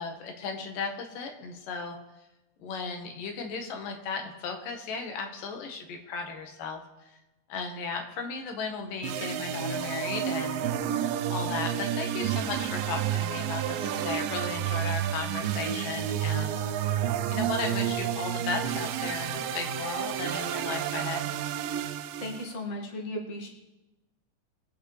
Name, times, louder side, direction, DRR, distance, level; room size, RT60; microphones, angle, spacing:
voice 1, 0.0-2.0 2.6-6.8 7.5-10.6 11.3-17.0 17.3-21.3, left 4 dB, 85° left, 4 dB, 3.0 m, -35 dB
sound 1, 9.0-22.5, right 10 dB, 90° right, 2.3 m, -30 dB
voice 2, 22.2-23.5, left 1 dB, 25° left, -1 dB, 1.7 m, -36 dB
23.0 x 8.4 x 3.3 m, 1.0 s
omnidirectional pair, 3.8 m